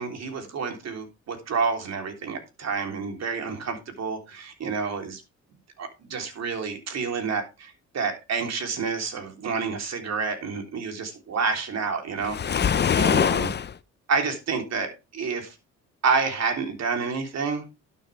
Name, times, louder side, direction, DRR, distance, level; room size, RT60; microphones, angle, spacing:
voice 1, 0.0-5.2 5.8-13.6 14.1-15.5 16.0-17.6, right 5 dB, 60° right, 6 dB, 3.3 m, -29 dB
Waves surf, 12.2-13.7, left 8 dB, 35° left, 0.7 m, -23 dB
12.0 x 9.2 x 3.3 m, 0.26 s
cardioid pair, 90°, 30 cm